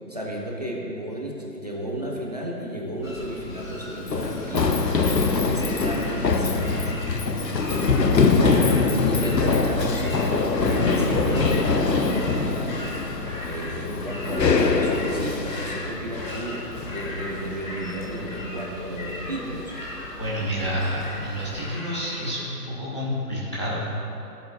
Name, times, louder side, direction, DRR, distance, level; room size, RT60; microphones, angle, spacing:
voice 1, 0.1-4.8 5.2-7.0 7.7-7.9 8.8-12.8 13.4-19.8, right 1 dB, 25° right, -2 dB, 0.7 m, -33 dB
sound 1, 3.0-22.4, left 1 dB, 55° left, 2.1 m, -38 dB
Run, 3.1-21.7, left 4 dB, 85° left, 0.9 m, -24 dB
voice 2, 20.2-23.8, equal, 20° left, -8 dB, 0.7 m, -29 dB
16.0 x 7.2 x 2.5 m, 3.0 s
figure-of-eight pair, 155°, 49 cm